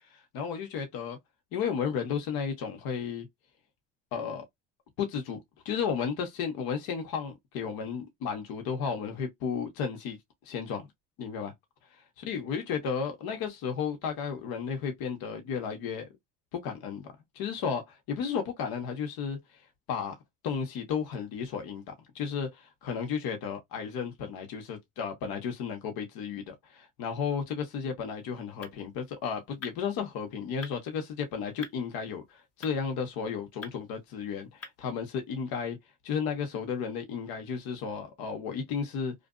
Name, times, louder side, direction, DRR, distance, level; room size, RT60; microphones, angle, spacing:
voice 1, 0.1-1.2 1.5-3.3 4.1-4.4 5.0-10.2 10.4-10.9 11.2-11.5 12.2-16.1 16.5-17.1 17.3-19.4 19.9-20.1 20.4-35.8 36.0-39.1, left 6 dB, 70° left, 1.0 m, -33 dB
sound 1, 28.1-35.3, left 4 dB, 40° left, 1.0 m, -51 dB
2.5 x 2.4 x 2.2 m
supercardioid pair, 80°, 38 cm